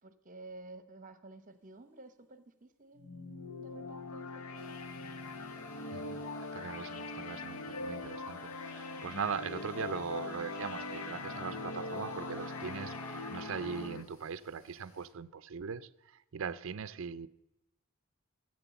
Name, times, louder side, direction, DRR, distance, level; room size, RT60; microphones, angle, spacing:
voice 1, 0.0-4.8, right 2 dB, 35° right, 0.8 m, -52 dB
sound 1, 3.0-14.0, left 3 dB, 75° left, 0.8 m, -42 dB
sound 2, 4.3-13.9, right 1 dB, 10° left, 1.5 m, -53 dB
sound 3, 4.5-15.1, left 1 dB, 60° left, 6.0 m, -63 dB
voice 2, 5.9-17.3, right 6 dB, 60° right, 0.5 m, -40 dB
16.0 x 7.9 x 7.0 m
head